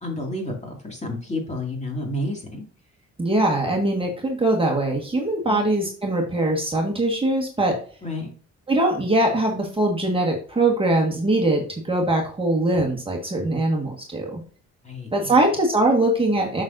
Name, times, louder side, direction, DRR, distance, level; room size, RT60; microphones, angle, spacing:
voice 1, 0.0-2.6 5.5-5.6 8.0-8.3 14.8-15.3, left 1 dB, 25° left, 1 dB, 2.4 m, -30 dB
voice 2, 3.2-7.8 8.7-14.4 15.1-16.6, right 2 dB, 20° right, -1 dB, 1.6 m, -22 dB
7.2 x 6.2 x 2.6 m, 0.41 s
cardioid pair, 90°, 30 cm